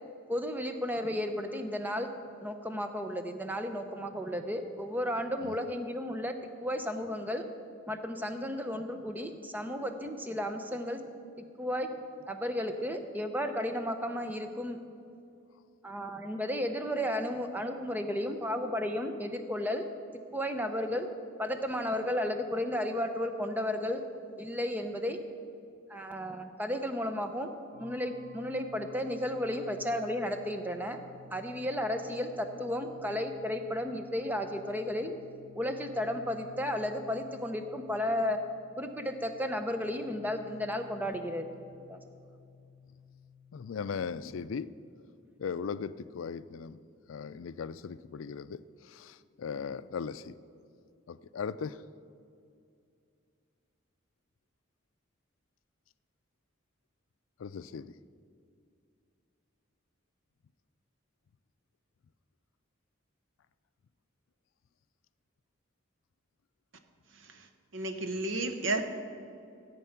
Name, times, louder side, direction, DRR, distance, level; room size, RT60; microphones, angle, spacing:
voice 1, 0.3-2.1 2.4-6.4 6.6-7.5 7.9-11.0 11.6-11.9 12.3-14.8 15.8-19.9 20.3-21.1 21.4-24.0 24.4-25.2 25.9-27.5 27.8-31.0 31.3-35.1 35.5-38.4 38.8-41.5 41.9-42.0, left 1 dB, 10° right, 7 dB, 0.6 m, -33 dB
sound 1, 27.7-44.2, left 5 dB, 45° right, 3.5 m, -55 dB
voice 2, 43.5-44.7 45.4-46.8 47.1-50.3 51.1-51.8 57.4-57.9, left 6 dB, 85° left, 15 dB, 0.4 m, -38 dB
voice 3, 67.1-67.5 67.7-68.8, right 2 dB, 75° right, 7 dB, 0.9 m, -32 dB
14.5 x 8.4 x 5.8 m, 2.4 s
head